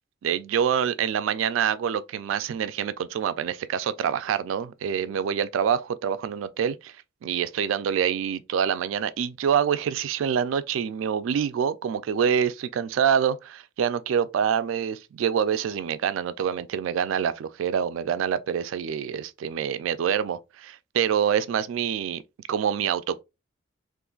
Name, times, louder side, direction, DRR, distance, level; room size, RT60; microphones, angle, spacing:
voice 1, 0.2-7.0 7.2-22.2 22.5-23.2, right 8 dB, 75° right, 0.3 m, -26 dB
3.7 x 2.5 x 2.3 m
head